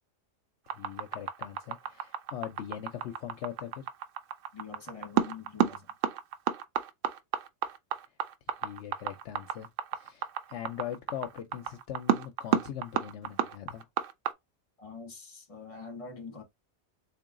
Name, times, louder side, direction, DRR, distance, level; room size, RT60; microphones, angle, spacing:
voice 1, 0.7-3.9 8.6-13.9, left 10 dB, 70° left, 0.8 m, -41 dB
sound 1, 0.7-14.3, right 9 dB, 80° right, 1.0 m, -30 dB
voice 2, 4.5-5.9 14.8-16.4, left 5 dB, 30° left, 1.1 m, -45 dB
3.8 x 2.5 x 3.6 m
omnidirectional pair, 1.3 m